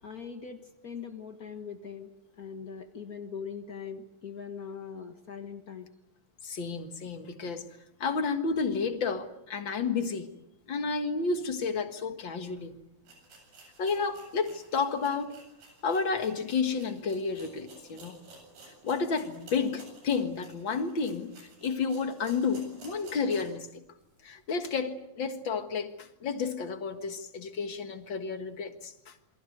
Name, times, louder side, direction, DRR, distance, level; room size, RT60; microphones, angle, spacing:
voice 1, 0.0-2.1 2.4-5.9, left 6 dB, 85° left, 0.8 m, -41 dB
voice 2, 6.4-7.7 8.0-10.3 10.7-12.8 13.8-15.4 15.8-18.2 18.8-21.4 21.6-23.8 24.2-29.2, left 5 dB, 45° left, 1.8 m, -31 dB
sound 1, 12.5-12.6 13.0-23.6 24.0-24.1 24.6-24.7, right 3 dB, 85° right, 9.6 m, -53 dB
28.0 x 24.5 x 8.0 m
omnidirectional pair, 4.0 m